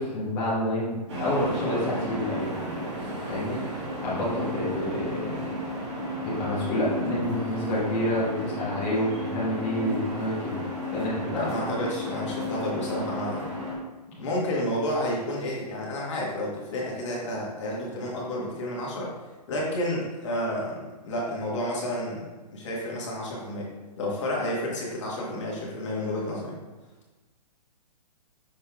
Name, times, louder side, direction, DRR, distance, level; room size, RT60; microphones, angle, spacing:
voice 1, 0.0-2.5 3.3-3.6 4.0-5.5 6.2-10.6 10.9-11.5, left 1 dB, 20° left, -9 dB, 1.2 m, -28 dB
sound 1, 1.1-13.7, left 1 dB, 40° right, 1.6 m, -33 dB
voice 2, 11.3-13.4 14.2-19.1 19.5-23.7 24.0-26.5, left 1 dB, 45° left, -4 dB, 1.8 m, -30 dB
6.5 x 4.1 x 3.6 m, 1.2 s
hypercardioid pair, 165°, 21 cm